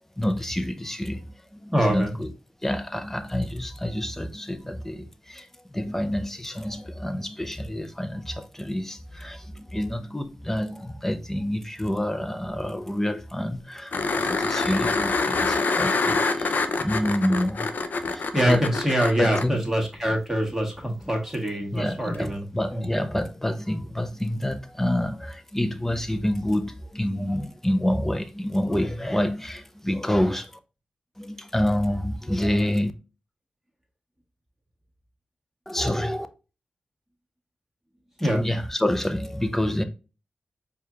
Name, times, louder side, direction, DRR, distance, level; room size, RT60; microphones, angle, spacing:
voice 1, 0.2-2.3 2.6-5.5 5.7-18.7 19.2-19.6 21.7-30.5 31.2-32.9 35.7-36.3 38.2-39.8, left 1 dB, 10° left, 0.5 m, -28 dB
voice 2, 1.7-2.1 18.3-22.5 22.7-22.9 38.2-38.4, right 1 dB, 5° right, 1.4 m, -25 dB
sound 1, 13.9-19.5 22.1-22.2, left 3 dB, 75° left, 0.5 m, -25 dB
4.7 x 2.4 x 2.8 m
cardioid pair, 60°, 3 cm